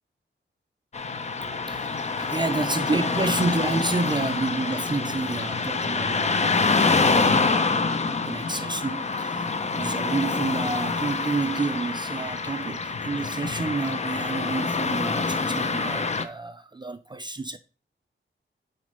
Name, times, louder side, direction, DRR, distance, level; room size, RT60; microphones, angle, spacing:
Car passing by / Traffic noise roadway noise, 0.9-16.2, left 4 dB, 35° left, 0.6 m, -26 dB
voice 1, 1.4-7.9 8.3-17.6, right 3 dB, 20° right, 0.4 m, -30 dB
6.3 x 4.4 x 5.3 m
wide cardioid pair, 155°, 21 cm